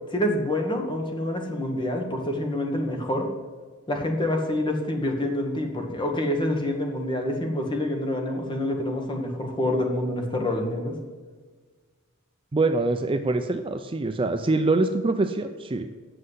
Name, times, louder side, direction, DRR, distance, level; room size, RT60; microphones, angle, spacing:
voice 1, 0.1-3.3 3.9-11.0, left 1 dB, 20° left, 3 dB, 1.4 m, -27 dB
voice 2, 12.5-15.9, right 2 dB, 25° right, 7 dB, 0.4 m, -24 dB
7.8 x 6.4 x 7.9 m, 1.5 s
head